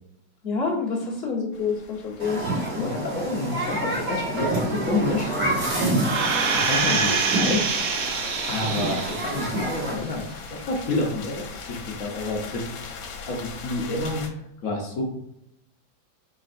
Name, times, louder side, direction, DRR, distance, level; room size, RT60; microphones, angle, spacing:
voice 1, 0.4-2.4 2.7-2.9, left 4 dB, 35° left, -4 dB, 1.2 m, -27 dB
sound 1, 1.5-14.3, left 5 dB, 85° left, 1.5 m, -41 dB
Human group actions, 2.2-10.0, right 2 dB, 65° right, 2.4 m, -28 dB
voice 2, 2.7-5.4 6.5-7.7 8.5-12.7 13.3-15.0, left 2 dB, 60° left, -1 dB, 0.9 m, -29 dB
sound 2, 6.0-9.4 9.9-10.0, right 5 dB, 85° right, 0.7 m, -25 dB
5.3 x 3.9 x 2.5 m, 0.79 s
omnidirectional pair, 2.1 m